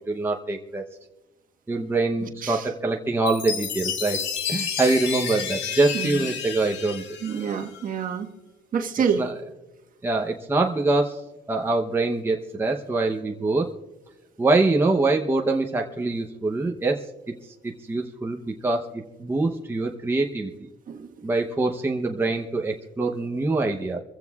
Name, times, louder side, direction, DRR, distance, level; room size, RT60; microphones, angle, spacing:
voice 1, 0.1-0.8 1.7-4.2 4.5-7.0 9.2-9.3 10.0-13.7 14.4-17.1 17.6-20.5 21.2-24.0, right 3 dB, 10° right, 2 dB, 0.8 m, -24 dB
voice 2, 2.2-2.6 5.9-6.3 7.2-8.3 8.7-9.3 20.9-21.1, right 6 dB, 50° right, 3 dB, 1.4 m, -27 dB
Chime, 3.3-7.9, left 7 dB, 75° left, 1.5 m, -31 dB
26.5 x 15.5 x 2.4 m, 1.1 s
cardioid pair, 145°, 19 cm